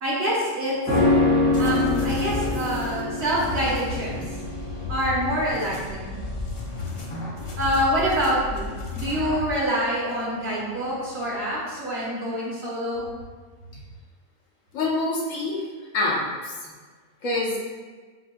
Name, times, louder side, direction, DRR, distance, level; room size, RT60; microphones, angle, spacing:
voice 1, 0.0-0.7 1.3-4.1 4.9-6.2 7.6-8.7 8.9-13.1 13.7-13.8, equal, 55° right, -6 dB, 1.4 m, -26 dB
sound 1, 0.9-10.3 10.6-10.7, left 2 dB, 15° left, 1.4 m, -26 dB
sound 2, 1.5-9.5, left 3 dB, 40° left, 0.4 m, -33 dB
voice 2, 14.7-15.6 15.9-16.7 17.2-17.6, left 2 dB, 85° left, -4 dB, 1.3 m, -26 dB
7.8 x 2.7 x 2.3 m, 1.4 s
omnidirectional pair, 1.3 m